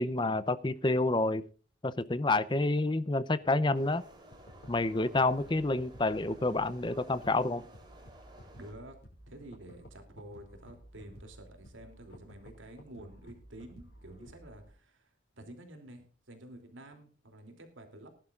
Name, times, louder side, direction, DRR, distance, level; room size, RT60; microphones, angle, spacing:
voice 1, 0.0-1.4 1.8-4.0 4.7-7.6, left 2 dB, 25° left, 0.6 m, -28 dB
sound 1, 3.7-8.7, right 1 dB, 25° right, 3.5 m, -55 dB
sound 2, 4.3-14.7, equal, 55° left, 5.8 m, -54 dB
voice 2, 8.6-8.9 9.3-18.1, right 1 dB, 90° right, 3.0 m, -50 dB
21.0 x 11.5 x 2.5 m
head